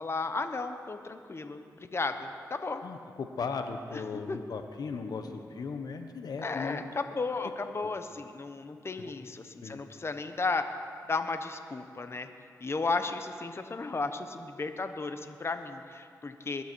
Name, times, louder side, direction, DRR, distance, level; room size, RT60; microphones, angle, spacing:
voice 1, 0.0-2.8 3.9-4.4 5.2-5.4 6.4-10.7 11.1-12.3 12.6-16.6, left 3 dB, 40° left, 8 dB, 1.0 m, -34 dB
voice 2, 2.8-6.8 7.8-7.9 9.0-9.1 9.6-9.8, left 5 dB, 70° left, 7 dB, 1.0 m, -37 dB
22.0 x 11.5 x 4.6 m, 2.3 s
cardioid pair, 60°, 7 cm